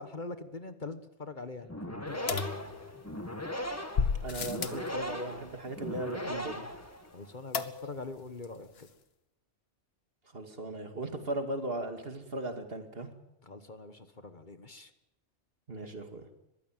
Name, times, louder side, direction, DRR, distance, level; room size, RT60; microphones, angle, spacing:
voice 1, 0.0-2.4 7.1-8.9 13.4-14.9, left 3 dB, 45° left, 10 dB, 1.4 m, -43 dB
sound 1, 1.6-7.3, equal, 15° left, 1.8 m, -39 dB
sound 2, 2.3-3.3 3.9-4.9 7.5-8.1 8.4-8.5 8.8-8.9, left 5 dB, 60° left, 1.4 m, -33 dB
voice 2, 4.2-6.7 10.3-13.1 15.7-16.3, right 1 dB, 55° right, 6 dB, 2.4 m, -37 dB
22.0 x 15.0 x 9.1 m, 0.88 s
omnidirectional pair, 1.2 m